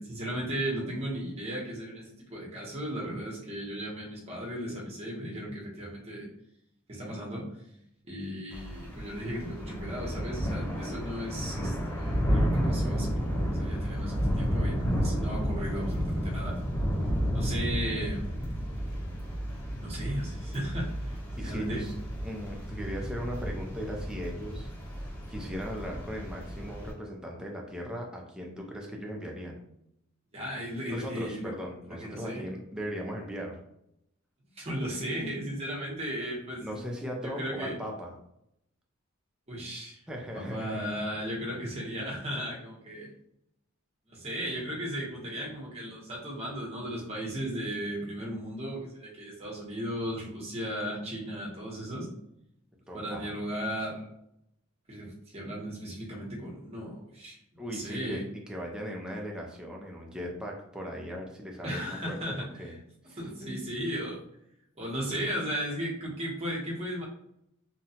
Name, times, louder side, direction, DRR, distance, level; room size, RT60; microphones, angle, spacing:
voice 1, 0.0-6.3 6.9-7.5 8.0-16.6 17.3-18.3 19.8-21.2 21.4-21.9 30.3-31.5 32.0-32.4 34.6-36.7 37.2-37.8 39.5-40.0 40.3-43.1 44.1-52.1 52.9-54.1 54.9-58.2 61.6-62.7 63.2-64.2 64.8-67.0, equal, 30° right, -3 dB, 0.8 m, -36 dB
Thunder / Rain, 8.5-26.9, equal, 90° left, 0.9 m, -32 dB
voice 2, 21.4-21.9 22.2-24.7 25.3-29.6 30.9-33.6 36.6-38.1 40.1-40.8 52.9-53.3 57.6-62.7 63.1-63.2, equal, 5° right, -1 dB, 0.4 m, -38 dB
2.8 x 2.2 x 2.7 m, 0.78 s
head